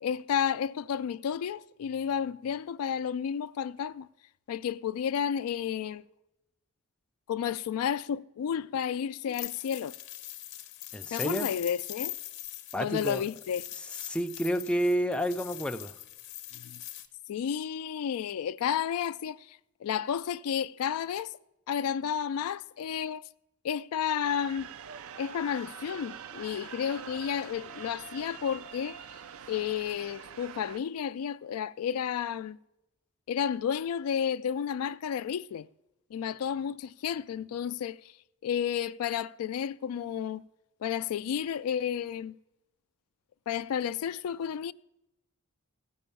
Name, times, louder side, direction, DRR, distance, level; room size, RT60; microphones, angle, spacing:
voice 1, 0.0-4.1 4.5-6.0 7.3-9.9 11.1-12.1 12.8-13.6 16.5-16.8 17.3-21.3 21.7-23.3 23.6-24.7 25.2-29.0 29.5-32.6 33.3-35.7 36.1-38.0 38.4-40.4 40.8-42.3 43.5-44.7, left 8 dB, 85° left, 0.3 m, -32 dB
sound 1, 9.3-17.1, left 15 dB, 60° left, 0.8 m, -41 dB
voice 2, 10.9-11.5 12.7-13.2 13.8-15.9, equal, 5° left, 0.4 m, -30 dB
sound 2, 24.2-30.8, right 7 dB, 70° right, 0.4 m, -45 dB
15.5 x 5.4 x 6.9 m
head